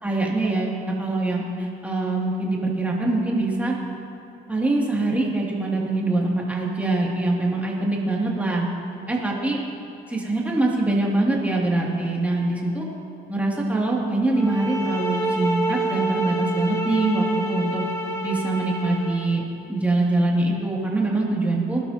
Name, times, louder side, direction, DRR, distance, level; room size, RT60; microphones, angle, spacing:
voice 1, 0.0-3.7 4.5-8.7 9.1-9.6 10.1-12.9 13.3-17.8 18.2-19.4 19.7-21.8, right 2 dB, 10° right, -3 dB, 2.7 m, -23 dB
sound 1, 14.3-19.3, right 2 dB, 20° left, 2.5 m, -28 dB
20.0 x 12.0 x 3.0 m, 2.8 s
cardioid pair, 110°, 17 cm